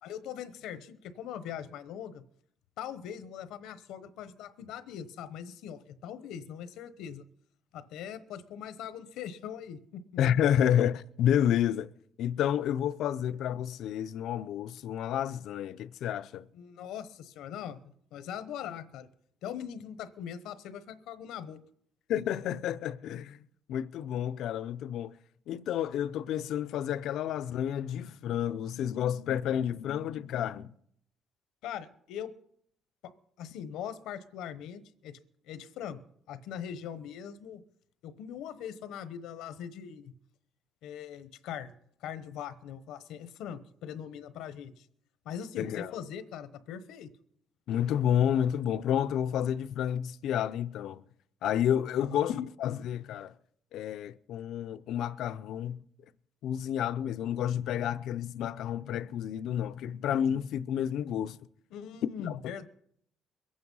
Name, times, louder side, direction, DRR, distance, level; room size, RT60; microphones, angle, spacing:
voice 1, 0.0-2.2 2.8-7.2 7.7-10.0 16.5-19.1 19.4-21.6 31.6-32.3 33.0-33.1 33.4-35.2 35.4-36.0 36.3-37.6 38.0-40.1 40.8-41.7 42.0-44.9 45.2-47.1 52.0-52.2 61.7-62.7, left 9 dB, 75° left, 1.0 m, -41 dB
voice 2, 10.2-11.9 12.2-16.5 22.1-23.4 23.7-25.1 25.5-30.7 45.6-45.9 47.7-51.0 51.4-53.3 53.7-55.8 56.4-61.4 62.2-62.4, left 10 dB, 60° left, 0.5 m, -30 dB
22.5 x 8.7 x 5.5 m
cardioid pair, 170°, 0 cm